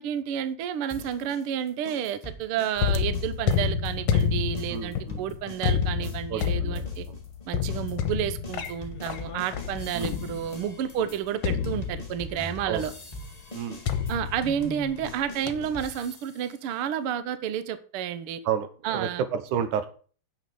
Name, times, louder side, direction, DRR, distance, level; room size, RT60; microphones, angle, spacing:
voice 1, 0.0-7.1 7.5-12.9 14.1-18.4 18.8-19.2, right 9 dB, 65° right, 12 dB, 1.4 m, -30 dB
sound 1, 0.9-6.5 6.7-16.5, left 1 dB, 15° left, 1.3 m, -42 dB
sound 2, 2.8-10.7 11.4-12.4 13.9-15.1 15.5-15.8, left 7 dB, 65° left, 2.1 m, -29 dB
voice 2, 4.7-5.2 6.3-7.2 9.9-10.2 12.7-12.9 13.5-13.8 18.5-19.9, right 8 dB, 85° right, 10 dB, 2.6 m, -31 dB
9.7 x 6.6 x 6.9 m, 0.41 s
omnidirectional pair, 3.4 m